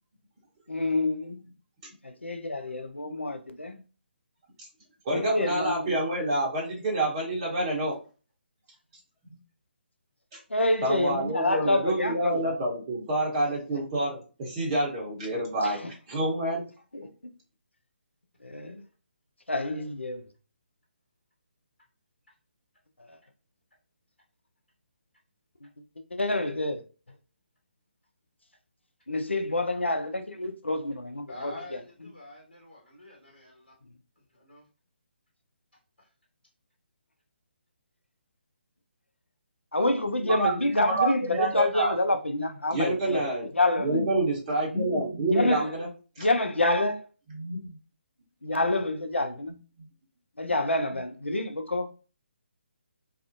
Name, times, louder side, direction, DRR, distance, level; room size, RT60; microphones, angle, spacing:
voice 1, 0.7-1.4 2.0-3.8 5.1-5.9 10.5-12.4 15.6-15.9 16.9-17.1 18.4-18.8 19.5-20.2 26.1-26.8 29.1-31.8 39.7-43.3 43.5-44.0 45.3-45.7 46.2-47.0 48.4-49.5 50.4-51.9, left 2 dB, 80° left, 0.4 m, -27 dB
voice 2, 5.0-8.0 10.8-15.8 16.1-16.6 40.2-41.9 42.7-43.5 43.8-45.9 46.2-46.3 47.3-47.8, right 1 dB, 25° right, 0.7 m, -28 dB
voice 3, 31.3-33.7 34.4-34.6, left 1 dB, 60° left, 1.2 m, -45 dB
2.4 x 2.0 x 2.5 m
figure-of-eight pair, 140°, 6 cm